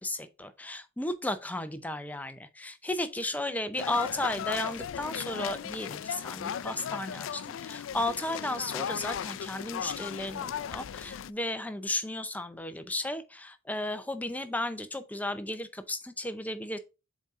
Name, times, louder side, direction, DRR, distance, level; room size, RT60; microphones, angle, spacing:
voice 1, 0.0-16.8, left 1 dB, 10° left, 0.5 m, -34 dB
sound 1, 3.8-11.3, left 8 dB, 65° left, 0.3 m, -37 dB
7.2 x 4.2 x 3.6 m
head